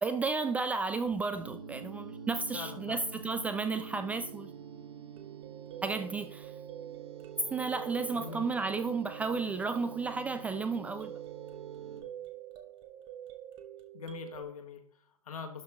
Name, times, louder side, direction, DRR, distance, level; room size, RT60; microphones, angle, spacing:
voice 1, 0.0-4.5 5.8-6.5 7.5-11.1, right 4 dB, 5° right, 0.3 m, -33 dB
sound 1, 1.4-12.0, right 6 dB, 45° right, 3.3 m, -47 dB
voice 2, 2.5-3.1 8.1-8.5 13.9-15.6, left 6 dB, 70° left, 1.7 m, -43 dB
sound 2, 5.2-14.4, right 11 dB, 25° right, 1.1 m, -47 dB
12.0 x 4.4 x 3.6 m
hypercardioid pair, 120°, 19 cm